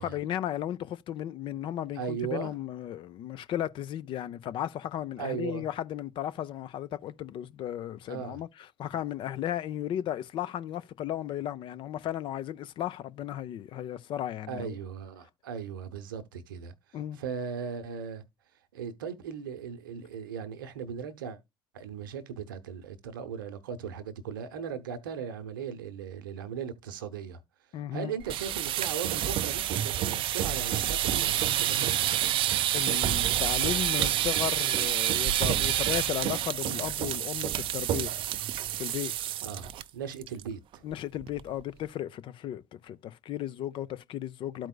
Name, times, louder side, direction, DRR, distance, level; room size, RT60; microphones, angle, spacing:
voice 1, 0.0-14.8 16.9-17.2 27.7-28.1 32.7-38.1 38.8-39.1 40.8-44.7, left 11 dB, 50° left, 0.5 m, -35 dB
voice 2, 2.0-2.5 5.2-5.6 8.1-8.4 14.5-16.7 17.2-18.2 18.7-21.4 21.7-27.4 27.9-32.0 39.4-40.8, right 7 dB, 75° right, 0.8 m, -38 dB
sound 1, 28.2-39.8 40.1-40.4 40.7-40.8 41.2-41.6, right 12 dB, 50° right, 0.4 m, -28 dB
13.0 x 4.5 x 2.2 m
figure-of-eight pair, 50°, 11 cm